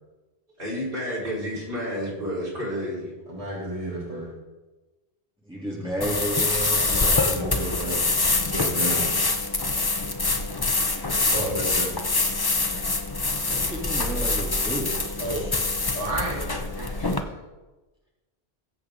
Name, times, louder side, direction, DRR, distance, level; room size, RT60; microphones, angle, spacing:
voice 1, 0.6-3.1, equal, 65° right, -7 dB, 5.1 m, -30 dB
voice 2, 3.3-4.3 6.8-9.1 11.3-12.0 15.2-15.5 15.9-17.4, right 1 dB, 35° right, -7 dB, 3.5 m, -32 dB
voice 3, 5.4-7.3 13.4-14.9, right 1 dB, 5° right, -5 dB, 3.1 m, -31 dB
sound 1, 6.0-17.2, left 3 dB, 25° left, 0.7 m, -25 dB
20.5 x 7.8 x 3.9 m, 1.2 s
omnidirectional pair, 1.0 m